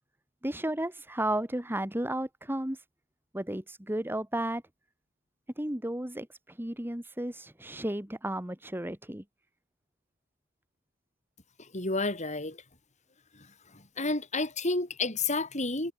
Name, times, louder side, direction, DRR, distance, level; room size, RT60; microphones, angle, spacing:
voice 1, 0.4-2.8 3.3-4.6 5.6-9.2, right 1 dB, 10° right, 1.9 m, -33 dB
voice 2, 11.7-12.6 13.7-15.9, left 3 dB, 35° left, 7.1 m, -30 dB
head